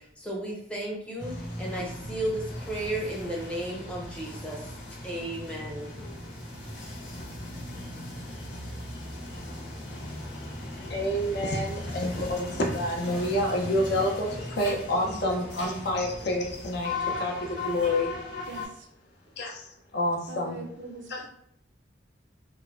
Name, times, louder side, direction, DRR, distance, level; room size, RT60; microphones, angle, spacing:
voice 1, 0.0-4.7 5.0-5.9, right 1 dB, 5° left, -3 dB, 0.6 m, -34 dB
sound 1, 1.2-18.7, left 2 dB, 80° left, 0.9 m, -38 dB
voice 2, 9.9-18.1 19.4-20.6 21.1-21.3, left 1 dB, 60° left, 0 dB, 0.6 m, -29 dB
voice 3, 18.5-18.9 20.3-21.3, right 3 dB, 70° right, 2 dB, 0.5 m, -42 dB
3.0 x 2.1 x 2.5 m, 0.73 s
head